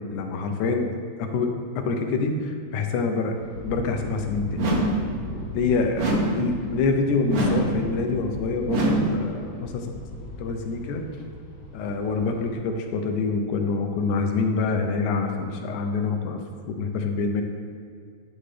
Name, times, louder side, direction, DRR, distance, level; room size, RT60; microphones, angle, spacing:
voice 1, 0.1-0.9 1.2-3.4 3.6-4.7 5.5-9.7 10.2-11.0 11.7-16.4 16.7-17.4, left 4 dB, 85° left, 4 dB, 2.3 m, -26 dB
sound 1, 3.3-12.5, left 1 dB, 70° left, 1.0 m, -39 dB
sound 2, 4.6-5.1 6.0-6.5 7.3-7.8 8.7-9.2, right 1 dB, 80° right, 0.8 m, -23 dB
11.5 x 7.4 x 3.3 m, 2.2 s
omnidirectional pair, 3.3 m